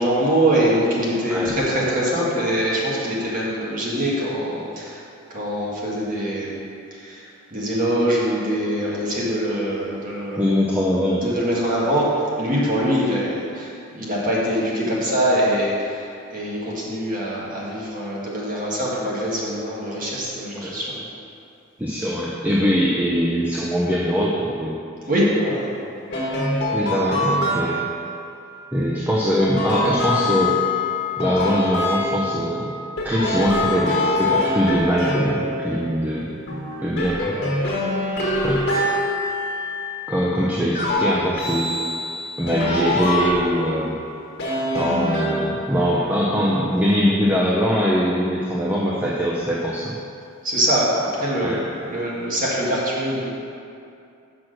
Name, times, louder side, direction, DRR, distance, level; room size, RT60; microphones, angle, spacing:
voice 1, 0.0-5.0 5.3-6.6 6.9-7.3 7.5-10.5 11.2-21.0 25.1-25.7 50.4-53.2, equal, 40° right, -6 dB, 1.7 m, -23 dB
voice 2, 10.4-11.2 20.6-20.8 21.8-24.8 26.7-27.9 28.7-30.6 31.2-32.6 33.0-36.4 36.8-37.4 38.4-38.6 40.1-41.7 42.4-44.0 44.7-50.0 51.4-51.6, equal, 10° right, -5 dB, 0.6 m, -22 dB
sound 1, 26.1-28.1 29.4-32.6 33.0-36.0 36.5-40.0 40.7-43.8 44.4-45.8, left 1 dB, 50° left, 1.4 m, -24 dB
6.2 x 6.0 x 6.5 m, 2.5 s
head